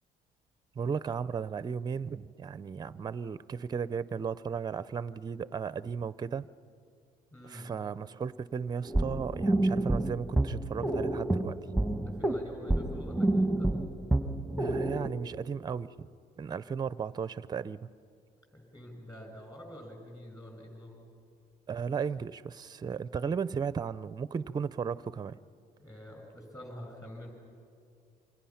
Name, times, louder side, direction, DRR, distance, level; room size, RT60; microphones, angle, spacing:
voice 1, 0.8-6.5 7.4-11.6 14.6-16.1 16.4-17.8 21.7-25.4, right 6 dB, 25° right, 17 dB, 0.5 m, -35 dB
voice 2, 7.3-7.7 12.0-13.8 18.5-21.0 25.8-27.3, equal, 20° left, 3 dB, 5.9 m, -47 dB
sound 1, 8.9-15.1, right 2 dB, ahead, 1.3 m, -29 dB
28.5 x 24.5 x 5.8 m, 2.3 s
cardioid pair, 110°, 17 cm